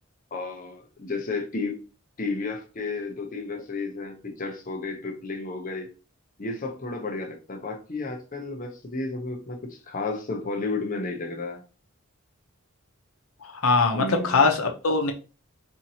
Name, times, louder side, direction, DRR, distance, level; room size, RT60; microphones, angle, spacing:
voice 1, 0.3-1.8 2.2-5.9 6.4-11.6 13.9-14.5, left 3 dB, 40° left, 0.7 m, -32 dB
voice 2, 13.5-15.1, left 4 dB, 90° left, 0.8 m, -22 dB
4.3 x 2.7 x 2.8 m
head